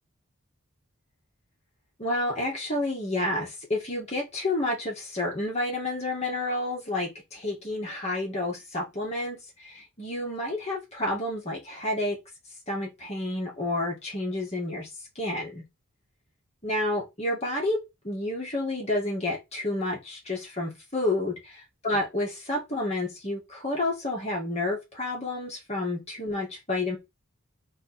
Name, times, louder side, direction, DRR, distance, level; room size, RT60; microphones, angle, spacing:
voice 1, 2.0-12.2 12.7-14.9 15.2-15.6 16.6-17.8 18.0-21.4 21.8-27.0, left 1 dB, 30° left, 1.8 m, -30 dB
3.9 x 3.1 x 4.1 m
head